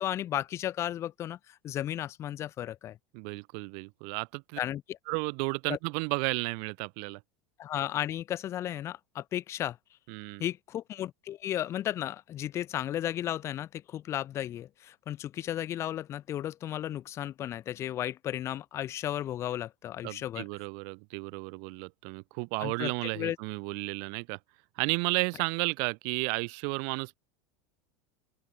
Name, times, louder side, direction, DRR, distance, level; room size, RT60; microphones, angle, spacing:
voice 1, 0.0-3.0 4.6-5.0 5.7-5.8 7.6-9.8 10.4-20.5 22.6-23.4, left 12 dB, 40° left, 0.8 m, -34 dB
voice 2, 3.1-4.6 5.1-7.2 10.1-10.5 20.0-24.4 24.8-27.2, right 40 dB or more, 60° right, 2.2 m, -33 dB
open air
hypercardioid pair, 85°, 8 cm